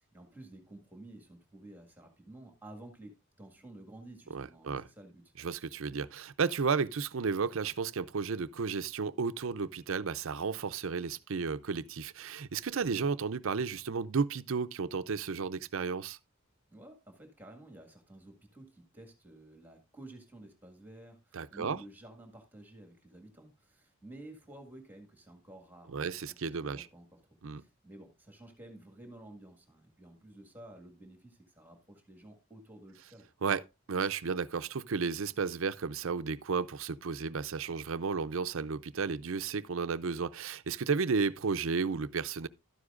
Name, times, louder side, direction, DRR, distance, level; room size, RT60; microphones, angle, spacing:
voice 1, 0.0-5.3 16.7-27.2 27.6-33.3, right 1 dB, 10° right, 1.8 m, -52 dB
voice 2, 4.3-4.9 5.4-16.2 21.3-21.8 25.9-26.9 27.4-27.6 33.4-33.6 33.9-42.5, right 5 dB, 65° right, 0.5 m, -33 dB
12.5 x 9.7 x 2.5 m
head